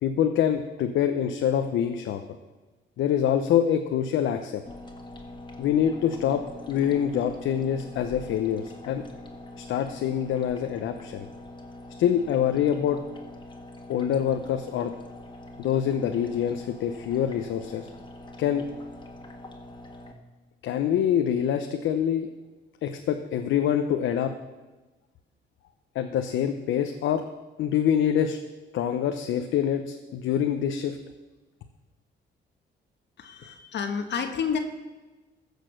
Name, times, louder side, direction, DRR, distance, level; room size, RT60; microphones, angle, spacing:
voice 1, 0.0-2.2 3.0-4.6 5.6-9.0 9.6-11.3 12.0-13.0 13.9-14.9 15.6-17.9 18.4-18.6 20.6-22.3 22.8-24.3 25.9-27.2 27.6-28.4 28.7-31.0, left 9 dB, 80° left, 6 dB, 0.8 m, -25 dB
sound 1, 4.6-20.1, left 1 dB, 25° left, 1.8 m, -44 dB
voice 2, 33.2-34.6, left 6 dB, 60° left, 5 dB, 1.2 m, -30 dB
14.5 x 6.6 x 6.4 m, 1.2 s
cardioid pair, 90°, 20 cm